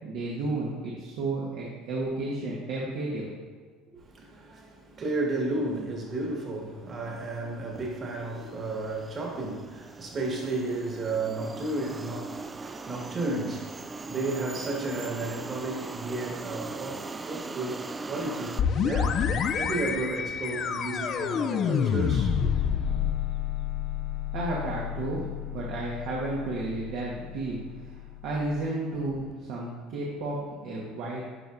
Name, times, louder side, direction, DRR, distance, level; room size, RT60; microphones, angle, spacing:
voice 1, 0.0-3.3 24.3-25.2 25.5-27.9 28.2-30.4 30.6-31.2, right 2 dB, 70° right, 1.4 m, -32 dB
voice 2, 3.9-22.5, right 2 dB, 40° right, 1.8 m, -33 dB
sound 1, 7.3-7.5 7.7-18.6, right 3 dB, 20° right, 0.4 m, -40 dB
sound 2, 18.6-28.1, left 7 dB, 50° left, 0.4 m, -29 dB
11.5 x 4.6 x 2.6 m
supercardioid pair, 85°, 0 cm